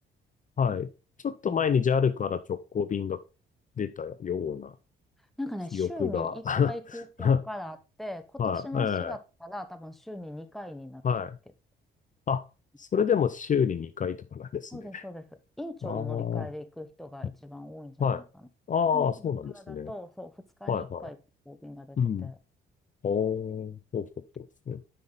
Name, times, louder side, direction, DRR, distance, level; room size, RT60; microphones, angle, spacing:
voice 1, 0.6-0.9 1.2-3.2 3.8-4.7 5.7-6.7 7.2-7.4 8.4-9.2 11.0-11.4 12.3-12.4 12.8-15.0 15.8-16.5 18.0-18.2 18.7-19.9 20.7-21.1 22.0-22.3 23.0-24.1 24.4-24.8, left 7 dB, 40° left, 12 dB, 0.6 m, -28 dB
voice 2, 5.4-11.0 14.7-15.3 15.6-18.5 18.9-21.2 21.4-22.4, left 1 dB, ahead, 8 dB, 1.1 m, -41 dB
8.4 x 5.6 x 4.1 m, 0.31 s
cardioid pair, 90°, 20 cm